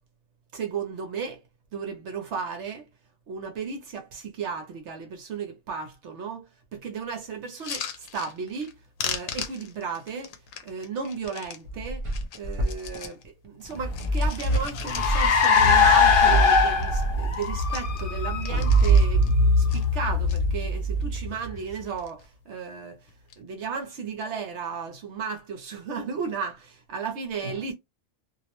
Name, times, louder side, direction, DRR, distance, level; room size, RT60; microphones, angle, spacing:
voice 1, 0.5-1.4 1.7-2.8 3.3-6.4 6.7-8.8 9.0-10.3 10.6-12.1 12.3-13.2 13.4-23.1 23.4-27.7, right 5 dB, 65° right, 0.8 m, -34 dB
sound 1, 7.5-8.7 9.0-11.6 12.0-13.2 13.6-16.1 16.4-16.5 16.7-17.0 17.3-19.3 19.7-20.4 20.9-21.4 21.7-22.3 23.1-23.4, left 8 dB, 80° left, 1.0 m, -38 dB
sound 2, 11.1-17.7, equal, 40° right, 0.4 m, -29 dB
Car, 13.8-21.6, left 2 dB, 50° left, 0.7 m, -21 dB
2.5 x 2.0 x 2.8 m
omnidirectional pair, 1.3 m